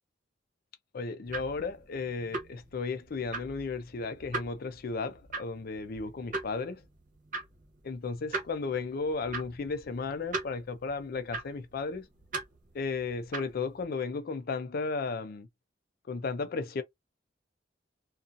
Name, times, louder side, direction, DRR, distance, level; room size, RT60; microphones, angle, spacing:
voice 1, 0.9-6.8 7.8-12.1 12.7-15.5 16.1-16.8, left 4 dB, 50° left, 0.4 m, -34 dB
sound 1, 1.2-13.9, right 3 dB, 45° right, 0.8 m, -41 dB
2.6 x 2.3 x 2.5 m
head